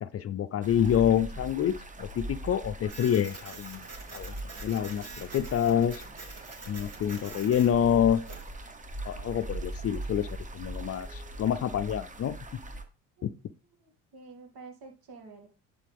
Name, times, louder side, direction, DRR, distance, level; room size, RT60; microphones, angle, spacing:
voice 1, 0.0-3.8 4.1-4.3 4.6-6.0 6.7-8.2 9.0-10.3 10.5-12.4 13.2-13.3, left 9 dB, 40° left, 13 dB, 0.5 m, -27 dB
sound 1, 0.6-12.8, right 1 dB, 20° right, 1.1 m, -41 dB
Printer, 2.9-8.5, right 3 dB, 40° right, 2.8 m, -46 dB
voice 2, 10.7-11.4 13.2-13.3 13.8-15.5, right 4 dB, 70° right, 3 dB, 2.5 m, -50 dB
10.5 x 3.9 x 3.5 m, 0.32 s
supercardioid pair, 85°, 39 cm